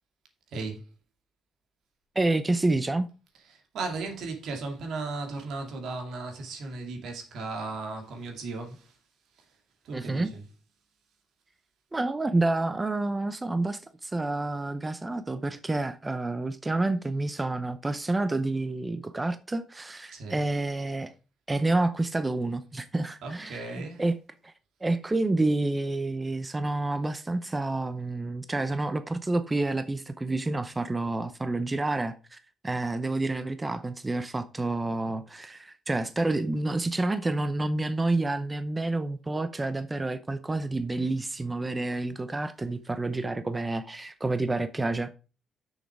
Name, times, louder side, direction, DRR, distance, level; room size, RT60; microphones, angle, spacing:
voice 1, 0.5-0.8 3.5-8.9 9.8-10.4 20.1-20.5 23.2-24.0, right 3 dB, 75° right, 2.4 m, -36 dB
voice 2, 2.1-3.1 9.9-10.3 11.9-21.1 21.5-24.2 24.4-24.5 24.8-45.1, right 2 dB, 20° right, 0.7 m, -29 dB
6.5 x 6.4 x 4.8 m
cardioid pair, 90°, 0 cm